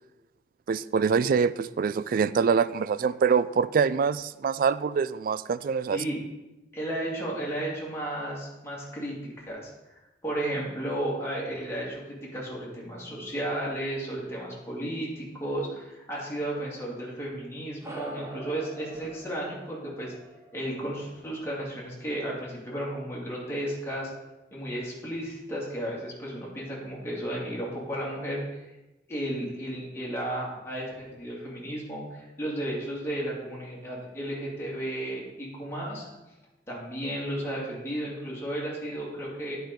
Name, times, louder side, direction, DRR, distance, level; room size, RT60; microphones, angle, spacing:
voice 1, 0.7-6.0, right 6 dB, 55° right, 16 dB, 0.3 m, -25 dB
voice 2, 6.7-9.7 10.2-20.1 20.5-24.1 24.5-28.4 29.1-36.1 36.7-39.6, right 1 dB, 15° left, -5 dB, 2.3 m, -33 dB
sound 1, 17.8-22.6, right 1 dB, 15° right, 1.3 m, -45 dB
9.3 x 4.7 x 5.2 m, 1.0 s
head